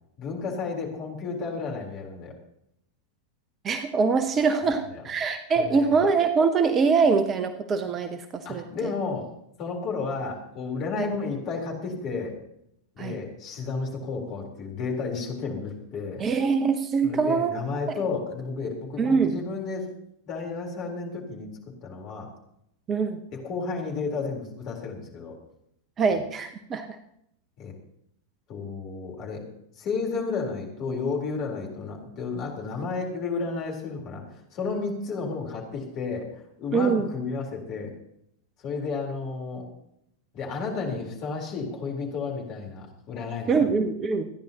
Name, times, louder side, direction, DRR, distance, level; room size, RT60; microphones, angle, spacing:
voice 1, 0.2-2.3 4.9-5.0 5.5-6.0 8.4-9.3 9.6-12.3 12.9-16.2 17.0-19.9 20.2-21.5 21.8-22.3 23.3-25.4 27.6-27.7 28.5-29.4 29.8-37.9 38.6-39.6 40.3-43.7, left 4 dB, 40° left, 0 dB, 4.0 m, -32 dB
voice 2, 3.6-8.9 11.0-11.1 13.0-13.2 16.2-17.5 17.9-18.0 19.0-19.3 22.9-23.2 26.0-27.0 36.7-37.1 43.5-44.3, right 5 dB, 25° right, 10 dB, 0.9 m, -24 dB
27.0 x 10.5 x 3.0 m, 0.75 s
figure-of-eight pair, 90°, 0 cm